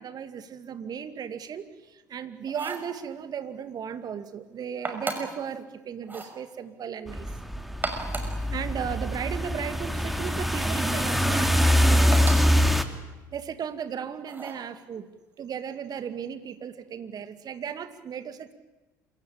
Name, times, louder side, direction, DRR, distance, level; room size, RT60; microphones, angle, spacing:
voice 1, 0.0-7.4 8.5-12.2 13.3-15.1 15.4-18.5, right 8 dB, 40° right, 10 dB, 2.4 m, -36 dB
Spoon pick up put down on countertop, 2.5-2.9 4.8-5.4 6.0-6.4 7.7-8.4 10.5-10.9 12.1-12.6 14.3-14.7, right 3 dB, 20° right, 6.1 m, -35 dB
sound 1, 7.1-12.8, equal, ahead, 2.7 m, -24 dB
27.5 x 24.0 x 8.8 m, 1.1 s
hypercardioid pair, 65°, 10 cm